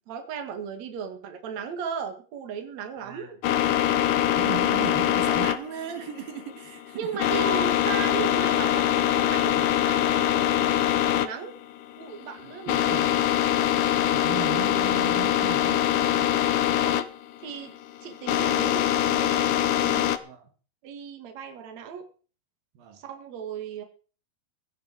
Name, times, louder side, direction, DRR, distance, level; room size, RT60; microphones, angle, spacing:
voice 1, 0.0-3.4 6.9-11.6 12.0-13.3 16.8-17.1 17.4-19.6 19.8-20.1 20.8-22.1 22.9-23.8, right 6 dB, 55° right, 3.1 m, -36 dB
voice 2, 3.0-3.4 4.3-7.5 9.6-9.7 12.7-13.1 14.1-16.3 20.2-20.5 22.8-23.0, right 10 dB, 80° right, 3.5 m, -38 dB
sound 1, 3.4-20.2, left 11 dB, 70° left, 2.3 m, -23 dB
sound 2, 7.4-14.4, right 2 dB, 35° left, 3.8 m, -46 dB
16.0 x 12.5 x 4.7 m
omnidirectional pair, 4.0 m